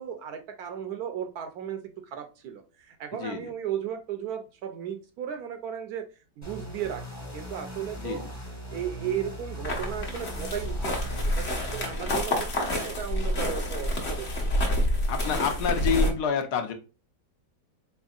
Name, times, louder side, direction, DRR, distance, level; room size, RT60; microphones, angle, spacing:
voice 1, 0.0-6.1 6.4-7.0 7.3-8.2 8.7-14.3, right 9 dB, 70° right, 6 dB, 1.0 m, -35 dB
voice 2, 3.2-3.5 8.0-8.3 15.1-16.7, left 6 dB, 70° left, 6 dB, 1.2 m, -28 dB
sound 1, 6.4-11.9, equal, 15° left, 0.7 m, -39 dB
sound 2, 9.6-16.1, left 1 dB, 45° left, 1.1 m, -28 dB
4.1 x 3.6 x 2.3 m, 0.33 s
omnidirectional pair, 1.9 m